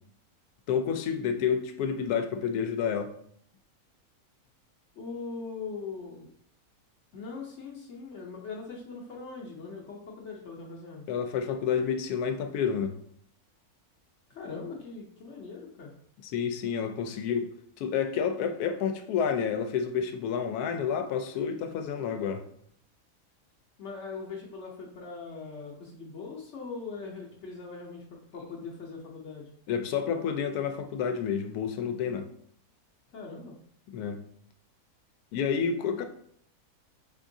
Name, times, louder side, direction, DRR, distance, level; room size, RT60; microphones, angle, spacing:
voice 1, 0.7-3.1 11.1-12.9 16.2-17.5 17.8-22.4 29.7-32.3 33.9-34.2 35.3-36.0, left 7 dB, 90° left, 8 dB, 1.1 m, -29 dB
voice 2, 5.0-6.3 7.1-11.0 14.3-15.9 23.8-28.1 28.3-29.5 33.1-33.5 35.9-36.0, left 4 dB, 55° left, -2 dB, 1.0 m, -41 dB
5.1 x 3.6 x 2.6 m, 0.66 s
omnidirectional pair, 1.6 m